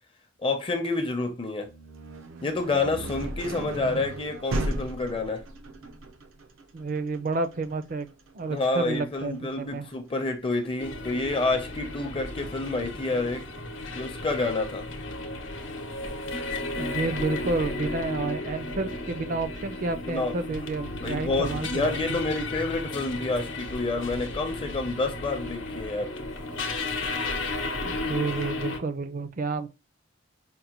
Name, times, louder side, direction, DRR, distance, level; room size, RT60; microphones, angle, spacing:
voice 1, 0.4-1.7 2.4-5.4 8.5-13.4 13.9-14.8 20.1-20.3 21.0-26.1, left 3 dB, 25° left, 0.6 m, -28 dB
sound 1, 1.6-11.4, right 1 dB, 90° right, 0.6 m, -36 dB
voice 2, 6.7-8.1 8.3-9.9 16.8-22.2 27.8-29.7, right 3 dB, 45° right, 0.4 m, -30 dB
sound 2, 10.8-28.8, left 2 dB, 70° left, 0.8 m, -34 dB
5.2 x 2.1 x 2.9 m
head